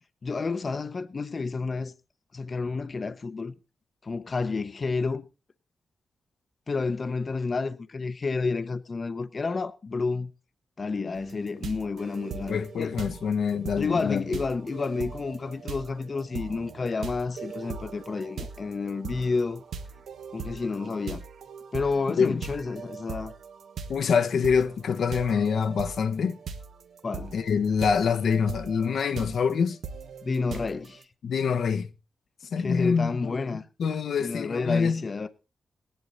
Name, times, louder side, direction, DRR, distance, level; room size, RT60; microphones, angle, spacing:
voice 1, 0.2-1.9 2.3-3.5 4.0-5.3 6.7-10.3 10.8-12.9 13.8-19.6 20.3-21.2 21.7-23.3 27.0-27.4 30.2-31.0 32.6-33.6 34.2-35.3, left 4 dB, 40° left, 0.7 m, -30 dB
sound 1, 11.2-31.0, right 5 dB, 90° right, 1.2 m, -40 dB
voice 2, 12.5-14.2 22.2-22.4 23.9-26.4 27.3-29.8 31.2-31.9 32.5-33.4 33.8-35.0, left 6 dB, 80° left, 0.9 m, -25 dB
18.0 x 10.5 x 4.0 m
wide cardioid pair, 105°, 0 cm